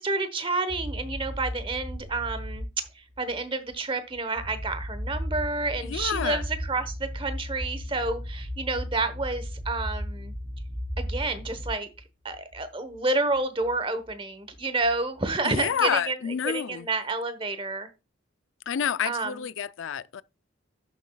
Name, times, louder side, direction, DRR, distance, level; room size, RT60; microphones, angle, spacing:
voice 1, 0.0-2.6 2.9-10.3 11.0-11.9 12.2-16.2 16.4-17.9 19.0-19.5, right 3 dB, 25° right, 1.0 m, -29 dB
sound 1, 0.7-3.4 3.7-3.8 4.1-12.0 12.3-12.6 12.9-13.0 13.3-13.4 13.6-13.8 14.0-14.1 14.5-15.3, equal, 65° right, 5.0 m, -35 dB
voice 2, 5.8-6.4 15.4-16.9 18.7-20.2, left 8 dB, 75° left, 0.4 m, -29 dB
11.0 x 7.2 x 2.3 m
head